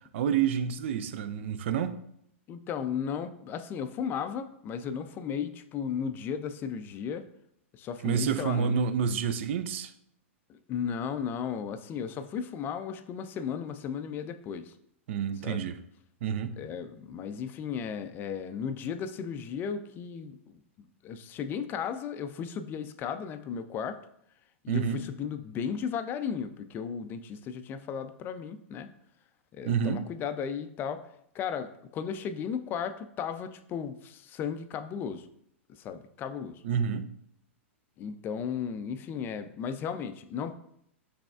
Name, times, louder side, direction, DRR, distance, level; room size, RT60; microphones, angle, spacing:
voice 1, 0.1-2.0 8.0-9.9 15.1-15.8 16.2-16.6 24.7-25.0 29.7-30.0 36.6-37.1, right 7 dB, 65° right, 0.4 m, -28 dB
voice 2, 2.5-7.3 7.7-8.8 10.5-14.7 15.4-15.7 16.6-20.6 21.0-24.0 24.6-28.9 29.5-31.1 31.3-35.3 35.7-36.6 38.0-40.6, left 7 dB, 30° left, 0.4 m, -35 dB
6.0 x 3.3 x 2.4 m
hypercardioid pair, 120°, 7 cm